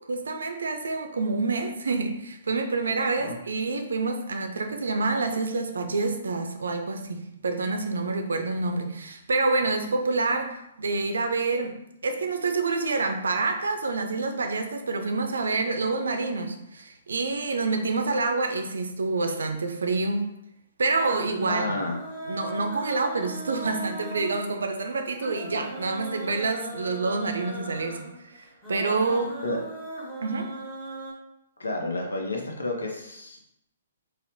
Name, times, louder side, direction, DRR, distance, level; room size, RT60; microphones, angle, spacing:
voice 1, 0.1-11.7 12.0-20.3 20.8-21.8 22.3-29.3 30.2-30.5, right 3 dB, 65° right, 5 dB, 0.4 m, -27 dB
sound 1, 21.0-31.1, right 1 dB, 15° left, 1.2 m, -39 dB
voice 2, 21.5-22.0 29.4-29.6 31.6-33.4, left 2 dB, 70° left, 1 dB, 0.7 m, -30 dB
4.2 x 2.0 x 2.6 m, 0.83 s
figure-of-eight pair, 120°, 0 cm